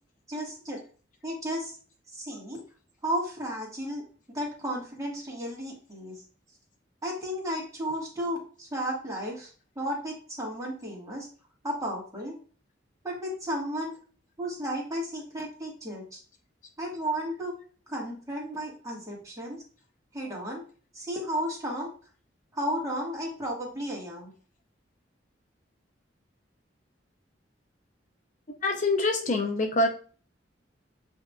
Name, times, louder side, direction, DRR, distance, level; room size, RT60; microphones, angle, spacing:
voice 1, 0.3-0.8 1.2-1.8 2.1-2.6 3.0-4.0 4.3-6.2 7.0-9.5 9.7-11.3 11.6-12.4 13.0-13.9 14.4-16.2 16.8-17.5 17.9-19.6 20.1-20.6 20.9-21.9 22.5-24.3, equal, 20° right, -2 dB, 1.5 m, -33 dB
voice 2, 28.6-29.9, left 2 dB, 40° left, 3 dB, 0.5 m, -25 dB
8.0 x 2.8 x 2.3 m, 0.40 s
head